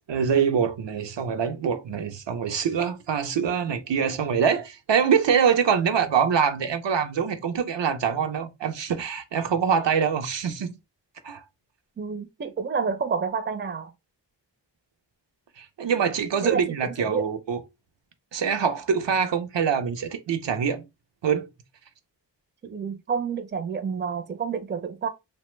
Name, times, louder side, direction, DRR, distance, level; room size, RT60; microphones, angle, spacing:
voice 1, 0.1-10.8 11.2-11.4 15.6-17.6 18.3-20.8 21.2-21.5, right 7 dB, 75° right, 0.6 m, -24 dB
voice 2, 12.0-13.9 16.4-17.3 22.6-25.1, right 5 dB, 25° right, 0.5 m, -29 dB
2.9 x 2.1 x 3.1 m
wide cardioid pair, 70°, 44 cm